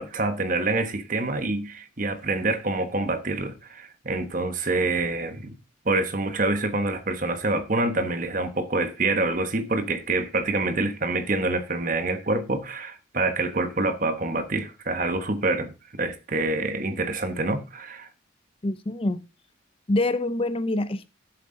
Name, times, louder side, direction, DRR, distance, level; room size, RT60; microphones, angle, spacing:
voice 1, 0.0-5.5 5.8-15.7 16.0-18.1, right 2 dB, 40° right, 1.1 m, -26 dB
voice 2, 18.6-19.2 19.9-21.1, left 2 dB, 25° left, 0.5 m, -25 dB
11.5 x 7.7 x 3.8 m
head